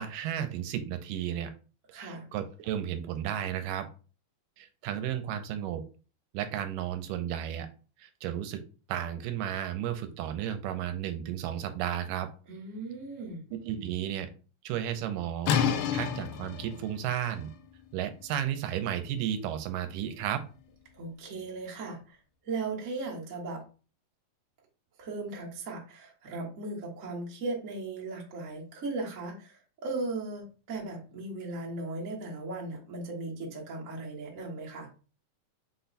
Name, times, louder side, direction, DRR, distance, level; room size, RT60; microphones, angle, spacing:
voice 1, 0.0-1.5 2.0-3.9 4.6-5.8 6.3-7.7 8.0-8.6 8.9-12.3 13.5-14.3 14.6-15.6 15.9-17.5 17.9-20.4, right 10 dB, 80° right, 9 dB, 2.1 m, -33 dB
voice 2, 1.9-2.3 12.5-13.4 20.9-22.2 22.4-23.6 25.0-34.9, right 3 dB, 65° right, -4 dB, 0.7 m, -37 dB
sound 1, 15.5-21.1, left 8 dB, 80° left, 1.8 m, -33 dB
5.8 x 2.2 x 4.0 m, 0.36 s
omnidirectional pair, 3.8 m